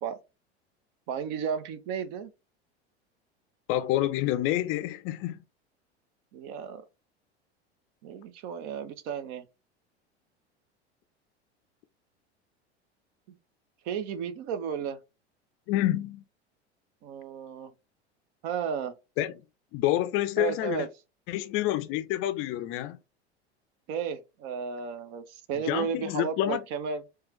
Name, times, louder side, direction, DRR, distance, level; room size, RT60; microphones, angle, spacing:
voice 1, 1.1-2.3 6.3-6.8 8.0-9.5 13.3-13.4 13.8-15.0 17.0-17.7 18.4-18.9 20.4-20.9 23.9-27.0, right 7 dB, 50° right, 0.6 m, -33 dB
voice 2, 3.7-5.4 15.7-16.2 19.2-19.3 19.7-20.9 21.3-23.0 25.7-26.6, left 14 dB, 40° left, 0.4 m, -28 dB
4.4 x 2.3 x 3.0 m
figure-of-eight pair, 80°, 34 cm